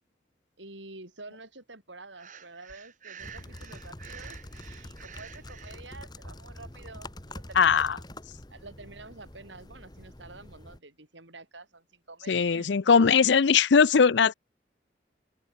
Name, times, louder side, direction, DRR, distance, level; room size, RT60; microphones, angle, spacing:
voice 1, 0.6-8.0 8.5-12.7, right 3 dB, 80° right, 6.7 m, -48 dB
Breathing, 2.1-5.8, right 7 dB, 45° right, 5.8 m, -48 dB
sound 1, 3.2-10.8, left 1 dB, 20° left, 1.9 m, -45 dB
voice 2, 7.6-8.0 12.3-14.3, left 6 dB, 75° left, 0.5 m, -20 dB
head